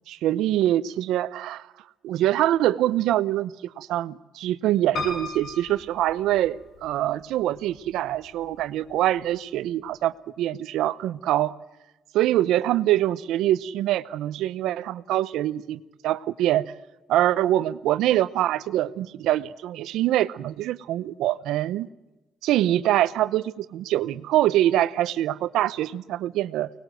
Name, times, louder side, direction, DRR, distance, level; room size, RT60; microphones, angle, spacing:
voice 1, 0.1-1.7 2.0-11.5 12.1-16.7 17.1-21.9 22.4-26.7, right 13 dB, 85° right, 0.7 m, -24 dB
Piano, 5.0-6.9 7.6-8.3 8.6-8.7 8.9-9.0, left 3 dB, 70° left, 6.9 m, -35 dB
24.5 x 20.0 x 7.8 m
cardioid pair, 75°, 0 cm